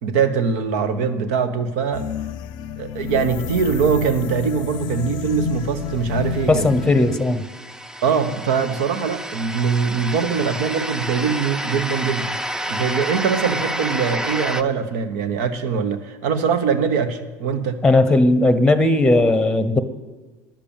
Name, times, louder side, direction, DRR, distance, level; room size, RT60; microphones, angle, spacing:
voice 1, 0.0-2.1 2.8-6.7 8.0-12.3 12.7-17.8, right 6 dB, 75° right, 10 dB, 1.0 m, -22 dB
sound 1, 1.9-7.2, left 9 dB, 60° left, 0.5 m, -30 dB
sound 2, 6.2-14.6, right 1 dB, 5° right, 0.5 m, -29 dB
voice 2, 6.5-7.4 17.8-19.8, left 2 dB, 10° left, 13 dB, 0.9 m, -17 dB
10.5 x 6.9 x 8.8 m, 1.3 s
hypercardioid pair, 80°, 8 cm